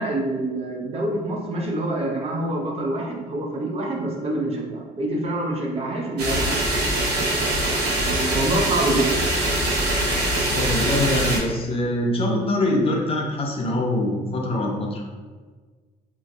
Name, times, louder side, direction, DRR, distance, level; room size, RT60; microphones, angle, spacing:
voice 1, 0.0-6.7 8.0-9.1, right 1 dB, 35° right, -1 dB, 0.7 m, -26 dB
sound 1, 6.2-11.4, right 1 dB, 80° right, 0.9 m, -23 dB
voice 2, 10.5-15.1, left 1 dB, 35° left, 0 dB, 0.6 m, -24 dB
2.5 x 2.3 x 3.9 m, 1.4 s
cardioid pair, 110°, 17 cm